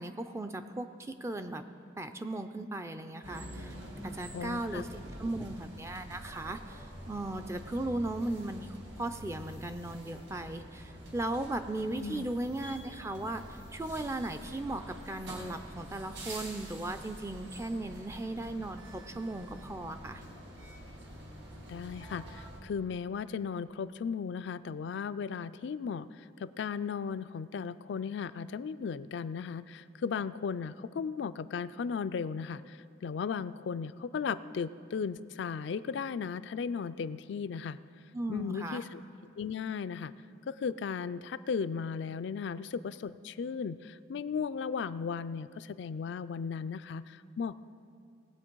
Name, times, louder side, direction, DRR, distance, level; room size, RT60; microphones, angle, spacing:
voice 1, 0.0-1.6 2.0-3.8 4.0-20.2 38.1-38.8, right 2 dB, 15° right, 8 dB, 0.4 m, -37 dB
sound 1, 3.2-22.6, equal, 70° right, 2.1 m, -46 dB
voice 2, 4.3-4.8 12.0-12.3 21.7-37.8 38.3-39.0 39.4-40.1 40.5-47.6, left 6 dB, 65° left, 15 dB, 0.3 m, -36 dB
18.5 x 7.9 x 4.6 m, 2.6 s
head